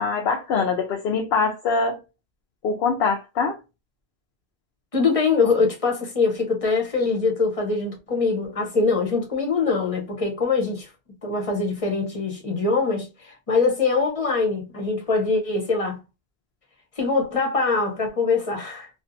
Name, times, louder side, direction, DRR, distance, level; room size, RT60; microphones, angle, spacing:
voice 1, 0.0-2.0 2.6-3.6, left 4 dB, 70° left, 0.8 m, -23 dB
voice 2, 4.9-10.9 11.2-16.0 17.0-18.9, left 4 dB, 35° left, 0.8 m, -23 dB
2.7 x 2.5 x 2.5 m
omnidirectional pair, 1.1 m